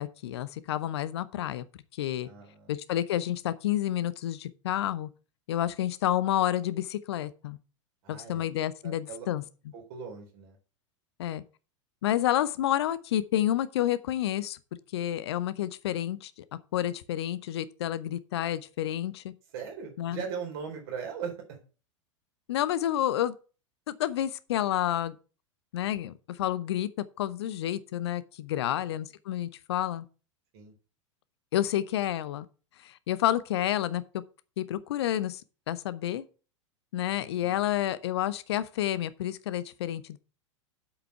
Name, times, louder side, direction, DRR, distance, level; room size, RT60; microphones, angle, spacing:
voice 1, 0.0-1.6 1.9-2.3 2.7-5.1 5.5-7.6 8.1-9.4 11.2-11.4 12.0-14.6 14.9-16.3 16.7-19.3 20.0-20.2 22.5-23.3 23.9-25.2 25.7-26.9 27.2-30.0 31.5-32.5 32.8-34.2 34.6-35.4 35.7-36.2 36.9-40.2, left 12 dB, 55° left, 0.7 m, -29 dB
voice 2, 2.2-2.7 8.0-8.5 8.8-9.3 9.7-10.6 19.5-21.6 28.5-29.1 30.5-30.7 37.2-37.6, right 6 dB, 50° right, 3.9 m, -40 dB
8.1 x 5.9 x 6.8 m
figure-of-eight pair, 90°, 16 cm